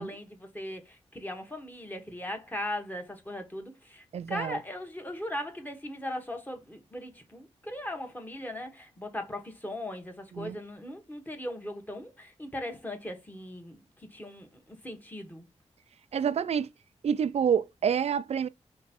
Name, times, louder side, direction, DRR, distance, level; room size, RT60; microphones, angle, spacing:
voice 1, 0.0-15.5, left 1 dB, 15° left, 1.3 m, -39 dB
voice 2, 4.1-4.6 10.3-10.6 16.1-16.7 17.0-18.5, right 7 dB, 65° right, 0.4 m, -28 dB
3.3 x 3.1 x 4.2 m
cardioid pair, 65°, 12 cm